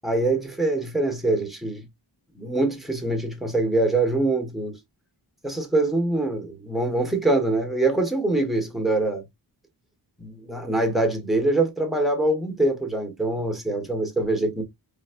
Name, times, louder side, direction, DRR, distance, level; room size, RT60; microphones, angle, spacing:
voice 1, 0.0-1.9 2.3-4.8 5.4-9.2 10.2-14.6, right 2 dB, ahead, 1.3 m, -24 dB
4.6 x 3.1 x 2.5 m
wide cardioid pair, 125°, 43 cm